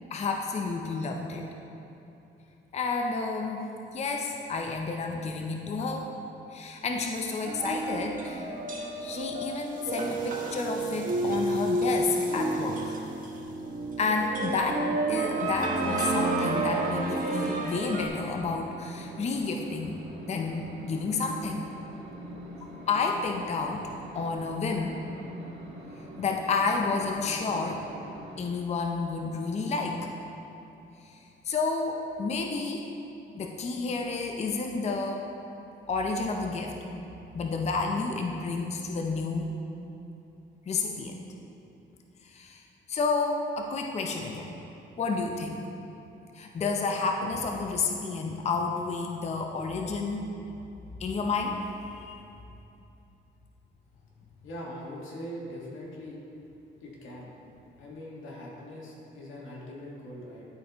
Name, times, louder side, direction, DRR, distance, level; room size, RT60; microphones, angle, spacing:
voice 1, 0.1-1.5 2.7-6.1 6.5-8.5 9.0-13.0 14.0-20.0 20.3-21.6 22.9-23.9 24.1-25.0 26.2-27.8 28.4-30.1 31.0-31.2 31.4-32.9 33.3-35.3 35.9-36.8 37.3-39.6 40.7-41.2 42.2-42.6 42.9-44.5 45.0-45.7 46.3-50.3 51.0-51.6 51.8-52.2, left 4 dB, 35° left, 2 dB, 0.5 m, -30 dB
sound 1, 7.4-18.1, right 2 dB, 45° right, 1.2 m, -30 dB
sound 2, 14.5-28.4, equal, 75° right, 1.5 m, -45 dB
voice 2, 54.4-56.2 56.8-57.3 57.8-60.4, equal, 85° left, -4 dB, 1.5 m, -41 dB
12.0 x 4.2 x 2.9 m, 2.9 s
cardioid pair, 90°, 20 cm